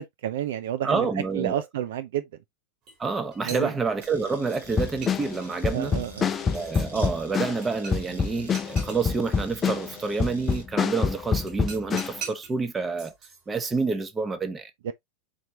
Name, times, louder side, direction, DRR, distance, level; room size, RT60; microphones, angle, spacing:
voice 1, 0.0-2.3 3.4-3.7 5.7-6.3 14.8-14.9, right 11 dB, 55° right, 0.4 m, -30 dB
voice 2, 0.8-1.6 3.0-5.9 6.5-13.1 13.5-14.7, right 4 dB, 15° right, 0.9 m, -28 dB
sound 1, 2.9-3.0 3.3-4.6 5.0-6.9 7.6-8.1 8.4-9.0 10.5-10.6 11.5-12.5 13.0-13.8, right 5 dB, 35° right, 2.2 m, -42 dB
sound 2, 4.0-10.6, right 3 dB, 70° right, 2.2 m, -47 dB
sound 3, 4.7-12.2, left 6 dB, 20° left, 0.4 m, -26 dB
4.4 x 4.3 x 2.7 m
figure-of-eight pair, 90°, 0 cm